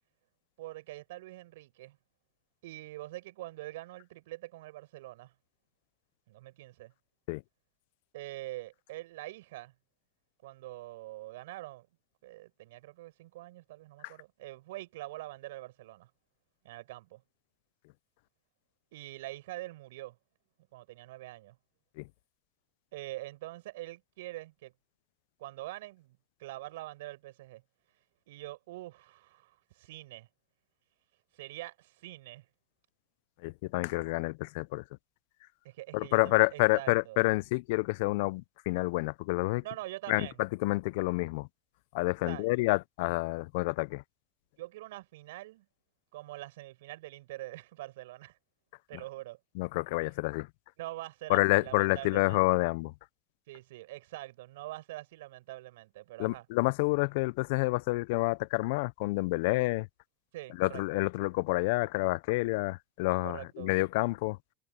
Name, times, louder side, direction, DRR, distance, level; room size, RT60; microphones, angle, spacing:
voice 1, 0.6-2.0 2.6-5.3 6.3-6.9 8.1-9.7 10.4-11.9 12.2-16.1 16.6-17.2 18.9-20.2 20.7-21.6 22.9-24.7 25.4-27.6 28.3-30.3 31.3-32.5 35.6-37.2 39.6-40.4 42.2-42.5 44.6-45.7 46.1-48.4 48.9-49.4 50.8-52.4 53.5-56.5 60.3-61.0 63.2-63.8, right 17 dB, 75° right, 7.3 m, -44 dB
voice 2, 33.4-34.8 35.9-39.6 40.1-41.5 41.9-44.0 49.6-50.5 51.3-52.9 56.2-59.9 60.6-64.4, left 23 dB, 70° left, 0.6 m, -29 dB
hypercardioid pair, 90°, 0 cm